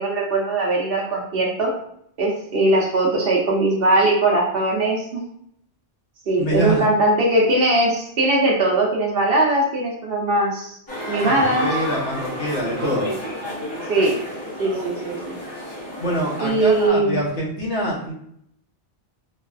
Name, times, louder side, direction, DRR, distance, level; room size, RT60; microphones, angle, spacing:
voice 1, 0.0-1.7 2.2-5.2 6.3-10.8 11.1-11.7 13.9-14.2 14.6-15.4 16.4-17.2, right 2 dB, 60° right, -2 dB, 0.9 m, -20 dB
voice 2, 6.4-6.8 11.2-13.1 16.0-18.1, equal, 75° left, -5 dB, 1.3 m, -25 dB
sound 1, 10.9-16.9, equal, 25° left, 1.0 m, -31 dB
3.3 x 2.3 x 2.3 m, 0.71 s
omnidirectional pair, 1.2 m